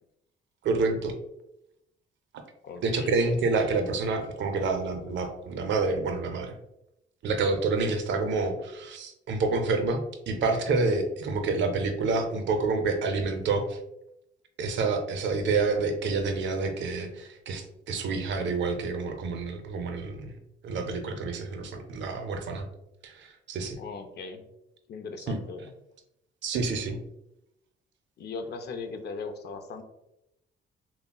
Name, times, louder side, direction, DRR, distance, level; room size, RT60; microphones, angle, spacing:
voice 1, 0.6-1.1 2.8-6.5 7.2-13.8 14.6-20.3 20.6-22.7 23.0-23.8 25.3-25.4 26.4-27.0, right 3 dB, 70° right, 6 dB, 0.5 m, -28 dB
voice 2, 2.6-3.2 7.7-7.9 23.8-24.4 24.9-25.7 28.2-29.8, left 4 dB, 55° left, 6 dB, 0.5 m, -39 dB
3.5 x 2.0 x 2.2 m, 0.84 s
cardioid pair, 90°, 20 cm